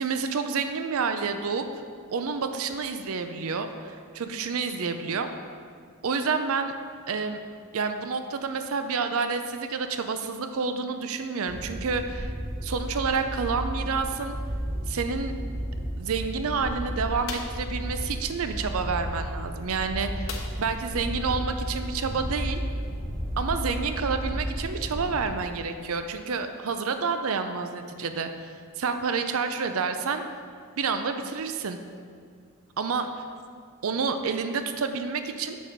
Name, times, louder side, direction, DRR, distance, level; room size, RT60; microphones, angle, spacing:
voice 1, 0.0-1.7 2.1-5.3 6.0-6.7 7.1-7.4 7.7-12.3 12.6-14.4 14.9-15.3 16.0-22.6 23.4-30.2 30.8-31.8 32.8-33.2 33.8-35.6, right 5 dB, 70° right, 8 dB, 0.5 m, -29 dB
sound 1, 11.5-25.2, equal, 40° right, 1.2 m, -33 dB
sound 2, 17.3-17.7 20.3-20.8 21.2-21.3 21.7-21.9, left 5 dB, 60° left, 0.8 m, -38 dB
6.3 x 6.0 x 5.1 m, 2.1 s
head